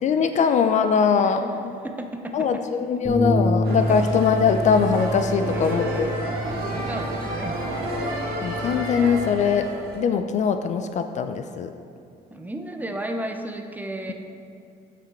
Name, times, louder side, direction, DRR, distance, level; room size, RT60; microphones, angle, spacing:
voice 1, 0.0-1.7 2.3-6.2 8.4-9.7 9.9-11.7, left 6 dB, 45° left, 8 dB, 0.4 m, -22 dB
voice 2, 1.8-2.6 5.5-6.4 6.7-7.6 12.3-14.1, right 1 dB, 10° right, 4 dB, 0.6 m, -34 dB
Bass guitar, 3.0-9.3, equal, 5° left, 1.5 m, -28 dB
sound 1, 3.6-10.0, equal, 65° right, 1.6 m, -30 dB
8.7 x 5.1 x 4.2 m, 2.4 s
cardioid pair, 110°, 17 cm